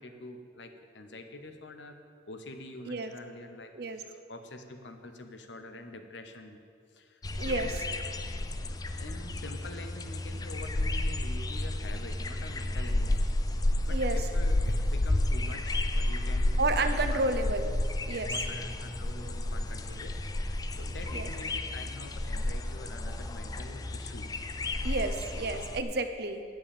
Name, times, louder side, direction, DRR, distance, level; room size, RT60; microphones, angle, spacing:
voice 1, 0.0-2.0 2.3-3.7 4.0-6.6 6.9-7.8 9.0-17.4 18.3-24.3 25.5-25.7, left 2 dB, 75° left, 6 dB, 0.9 m, -46 dB
sound 1, 7.2-25.8, left 1 dB, 20° left, 0.4 m, -31 dB
voice 2, 7.4-7.7 13.9-14.2 16.6-17.7 18.1-18.3 21.1-21.3 24.8-26.4, right 2 dB, 55° right, 8 dB, 0.7 m, -31 dB
8.9 x 7.6 x 7.2 m, 2.2 s
head